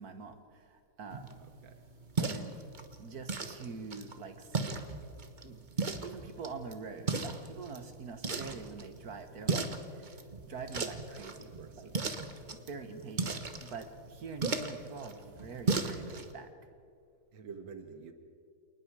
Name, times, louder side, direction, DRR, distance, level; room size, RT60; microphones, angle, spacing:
voice 1, 0.0-1.5 2.2-2.6 3.0-4.8 5.4-5.7 6.0-11.9 12.5-16.7, right 4 dB, 50° right, 8 dB, 1.8 m, -45 dB
sound 1, 1.1-16.3, right 4 dB, 30° right, 1.0 m, -37 dB
voice 2, 11.3-11.9 17.3-18.1, right 5 dB, 70° right, 7 dB, 2.2 m, -48 dB
28.0 x 19.5 x 4.9 m, 2.4 s
omnidirectional pair, 2.2 m